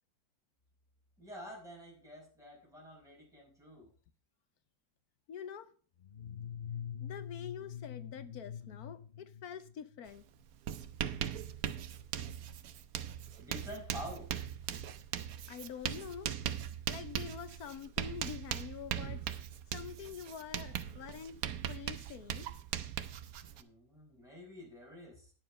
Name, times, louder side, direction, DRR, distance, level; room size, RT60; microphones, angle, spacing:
voice 1, 1.2-3.9 13.4-14.3 23.4-25.3, equal, ahead, 5.0 m, -48 dB
voice 2, 5.3-5.7 7.0-10.2 15.5-16.3 16.9-19.2 19.7-21.4 21.7-22.5, left 8 dB, 70° left, 1.3 m, -46 dB
sound 1, 6.0-10.1, left 8 dB, 90° left, 0.4 m, -44 dB
Writing, 10.1-10.2 10.5-23.6, right 10 dB, 65° right, 1.1 m, -40 dB
10.5 x 7.2 x 5.4 m
omnidirectional pair, 1.7 m